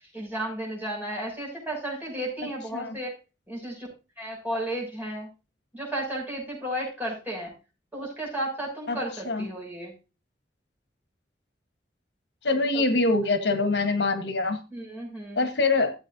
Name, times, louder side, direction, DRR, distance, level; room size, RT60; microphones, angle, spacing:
voice 1, 0.1-3.1 3.5-3.9 4.2-5.3 5.7-7.5 7.9-9.9 12.7-12.9 14.7-15.5, right 1 dB, 10° right, -3 dB, 6.7 m, -33 dB
voice 2, 12.4-14.6 15.4-15.9, left 3 dB, 80° left, 8 dB, 1.3 m, -24 dB
15.5 x 8.2 x 2.7 m, 0.30 s
head